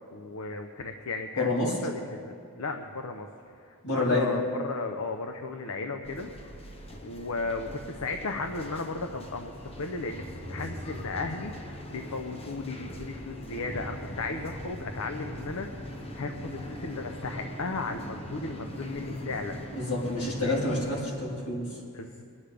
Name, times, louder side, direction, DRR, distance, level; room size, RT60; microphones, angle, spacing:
voice 1, 0.1-6.3 7.0-9.5 9.8-10.2 10.5-19.6 20.4-20.8 21.9-22.2, left 3 dB, 70° left, 5 dB, 0.7 m, -35 dB
voice 2, 1.4-1.7 3.8-4.4 19.7-21.8, left 2 dB, 85° left, -5 dB, 4.0 m, -28 dB
sound 1, 6.0-21.0, equal, 30° left, 1.1 m, -40 dB
23.5 x 9.6 x 3.4 m, 2.3 s
head